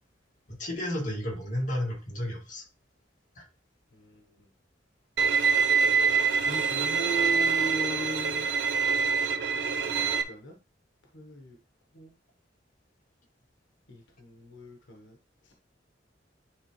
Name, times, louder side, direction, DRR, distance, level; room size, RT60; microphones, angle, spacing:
voice 1, 0.6-2.6 3.4-3.5, left 1 dB, 45° left, -2 dB, 2.1 m, -32 dB
voice 2, 3.9-4.2 6.2-8.5 9.8-10.5 11.1-11.6 11.9-12.1 13.9-15.2, right 2 dB, 80° left, 1 dB, 1.1 m, -38 dB
Bowed string instrument, 5.2-10.2, right 5 dB, 60° right, 0.6 m, -25 dB
9.7 x 3.6 x 3.1 m, 0.32 s
head